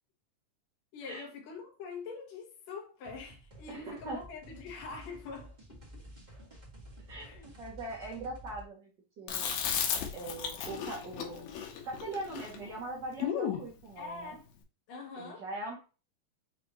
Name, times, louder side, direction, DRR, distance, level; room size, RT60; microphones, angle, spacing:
voice 1, 0.9-6.0 7.2-7.4 14.0-14.5 14.9-15.4, left 4 dB, 60° left, 2.2 m, -44 dB
sound 1, 3.0-8.7, equal, 20° right, 1.1 m, -51 dB
voice 2, 3.7-4.2 7.1-8.9 9.2-9.5 10.1-11.5 11.8-14.4 15.2-15.7, right 2 dB, 55° right, 1.2 m, -41 dB
Chewing mastication, 9.3-13.7, left 8 dB, 90° left, 2.6 m, -35 dB
6.6 x 2.6 x 2.8 m
omnidirectional pair, 3.9 m